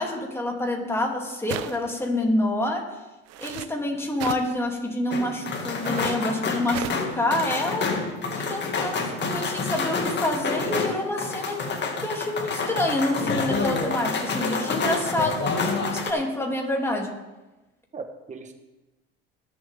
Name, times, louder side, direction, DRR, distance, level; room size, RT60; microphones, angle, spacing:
voice 1, 0.0-2.8 3.4-8.0 8.4-11.6 12.0-17.1, left 1 dB, 10° left, 0 dB, 2.9 m, -27 dB
sound 1, 1.5-2.0 3.3-3.7 4.2-4.5 5.7-6.2 6.7-7.1, right 12 dB, 55° right, 0.8 m, -35 dB
sound 2, 5.1-16.1, left 4 dB, 35° left, 2.1 m, -28 dB
voice 2, 5.8-6.4 8.2-8.5 17.9-18.5, right 4 dB, 25° right, 5 dB, 1.3 m, -39 dB
21.5 x 7.5 x 3.7 m, 1.1 s
supercardioid pair, 95°, 30 cm